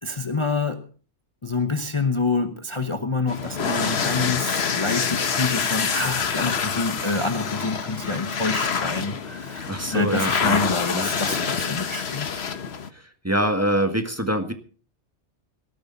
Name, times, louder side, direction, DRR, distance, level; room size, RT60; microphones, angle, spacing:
voice 1, 0.0-0.8 1.4-12.4, left 3 dB, 30° left, 7 dB, 1.0 m, -27 dB
sound 1, 3.3-12.9, left 6 dB, 65° left, 1.3 m, -26 dB
voice 2, 9.7-11.1 13.2-14.5, right 1 dB, 15° right, 6 dB, 1.6 m, -25 dB
18.5 x 13.5 x 3.9 m, 0.40 s
omnidirectional pair, 1.2 m